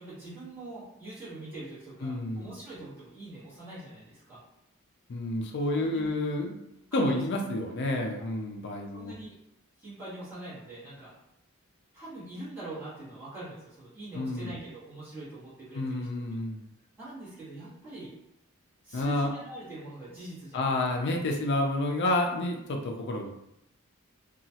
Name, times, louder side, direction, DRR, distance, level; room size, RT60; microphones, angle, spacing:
voice 1, 0.0-4.4 5.7-6.1 6.9-7.2 8.9-9.3 9.8-11.1 11.9-16.1 17.0-18.1 18.8-20.8, right 1 dB, 10° right, -12 dB, 1.4 m, -43 dB
voice 2, 2.0-2.5 5.1-6.6 6.9-9.1 14.1-14.5 15.7-16.6 18.9-19.3 20.5-23.3, left 2 dB, 50° left, 2 dB, 0.4 m, -29 dB
2.9 x 2.3 x 2.7 m, 0.82 s
head